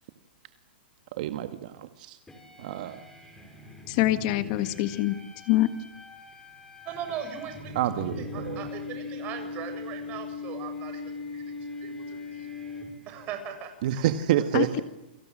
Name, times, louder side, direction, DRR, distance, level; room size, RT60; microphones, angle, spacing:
voice 1, 1.2-2.2 2.6-3.0 7.8-8.7 13.8-14.8, right 12 dB, 50° right, 9 dB, 1.8 m, -28 dB
sound 1, 2.3-13.3, left 4 dB, 5° left, 6.0 m, -40 dB
voice 2, 3.9-5.2 5.5-5.7 14.5-14.8, left 16 dB, 40° left, 11 dB, 1.7 m, -24 dB
voice 3, 6.9-11.5 11.8-12.5 13.1-14.1 14.7-14.8, right 8 dB, 25° right, 6 dB, 7.4 m, -39 dB
29.5 x 24.0 x 7.6 m, 0.91 s
hypercardioid pair, 155°, 6 cm